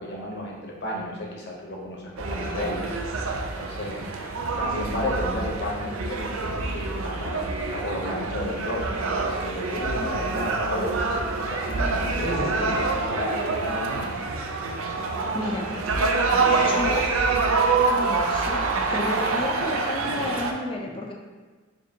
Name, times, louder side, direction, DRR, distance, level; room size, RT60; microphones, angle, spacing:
voice 1, 0.0-3.0 3.6-4.0 4.6-14.1, left 1 dB, 55° left, -2 dB, 0.8 m, -32 dB
sound 1, 2.2-20.5, right 3 dB, 85° right, 0.4 m, -26 dB
voice 2, 15.3-15.9 16.5-17.0 17.9-18.6 18.9-21.1, left 2 dB, 25° left, 0 dB, 0.4 m, -31 dB
4.8 x 2.6 x 2.7 m, 1.3 s
head